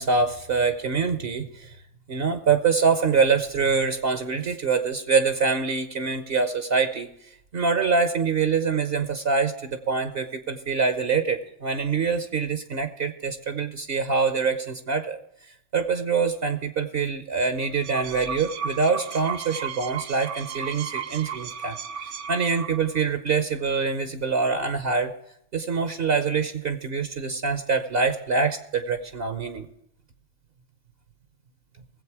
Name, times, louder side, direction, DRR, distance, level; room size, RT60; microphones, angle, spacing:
voice 1, 0.0-1.8 2.1-7.1 7.5-15.2 15.7-21.8 22.3-25.1 25.5-29.7, right 5 dB, 55° right, 9 dB, 1.1 m, -25 dB
sound 1, 17.6-23.0, right 7 dB, 85° right, 1.1 m, -35 dB
19.5 x 7.8 x 4.8 m, 0.78 s
omnidirectional pair, 1.2 m